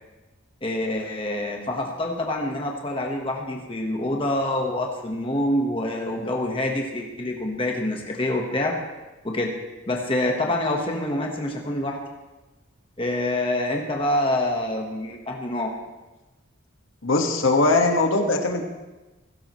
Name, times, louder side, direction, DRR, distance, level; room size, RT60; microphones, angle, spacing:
voice 1, 0.6-8.7 9.2-9.5 9.9-12.0 13.0-15.7, left 1 dB, 25° left, 1 dB, 1.3 m, -26 dB
voice 2, 17.0-18.6, left 2 dB, 75° left, 2 dB, 1.6 m, -20 dB
16.5 x 16.0 x 3.1 m, 1.1 s
head